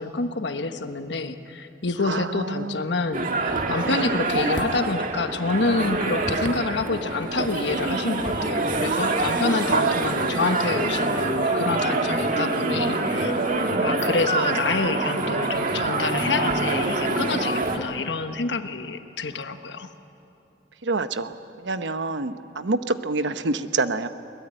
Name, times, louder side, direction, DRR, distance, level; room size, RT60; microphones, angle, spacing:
voice 1, 0.0-13.3 13.8-19.9, left 3 dB, 75° left, 8 dB, 1.2 m, -27 dB
voice 2, 2.0-2.8 3.8-4.2 9.7-10.1 13.6-14.0 20.8-21.3 21.6-24.1, right 3 dB, 85° right, 10 dB, 1.0 m, -27 dB
sound 1, 3.1-17.8, right 2 dB, 50° right, 1.9 m, -25 dB
23.0 x 20.5 x 9.0 m, 2.7 s
head